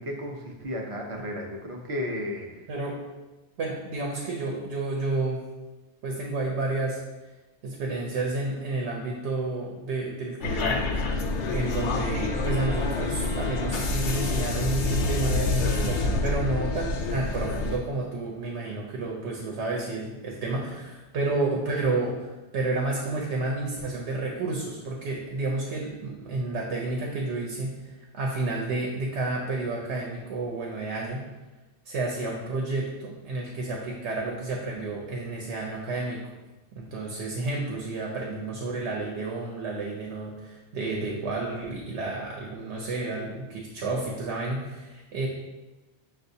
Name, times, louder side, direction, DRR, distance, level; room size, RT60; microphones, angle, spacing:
voice 1, 0.0-2.5, left 1 dB, 45° right, 0 dB, 0.5 m, -33 dB
voice 2, 2.7-3.0 3.6-5.4 6.0-7.0 7.6-10.8 11.5-31.2 31.8-36.3 36.7-45.3, right 2 dB, 85° right, 0 dB, 0.9 m, -30 dB
sound 1, 10.4-17.8, left 3 dB, 90° left, 0.9 m, -27 dB
6.2 x 2.4 x 2.6 m, 1.1 s
omnidirectional pair, 1.1 m